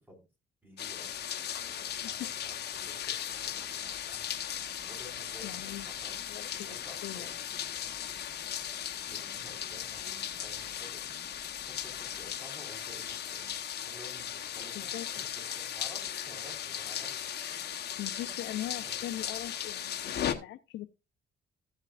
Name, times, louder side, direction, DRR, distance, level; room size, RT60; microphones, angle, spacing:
voice 1, 0.6-13.6 13.8-15.1 15.4-17.2 17.6-17.8 18.1-18.5 18.8-19.3, equal, 10° right, 4.8 m, -54 dB
sound 1, 0.7-20.2, right 1 dB, 45° right, 5.4 m, -62 dB
sound 2, 0.8-20.3, left 10 dB, 55° left, 1.1 m, -37 dB
sound 3, 4.2-12.4, left 4 dB, 20° left, 3.0 m, -60 dB
voice 2, 5.4-5.9 6.3-6.7 7.0-7.3 14.7-15.3 16.1-16.2 17.4-17.7 18.0-20.9, left 14 dB, 75° left, 0.6 m, -41 dB
15.5 x 7.3 x 2.5 m
cardioid pair, 95°, 20 cm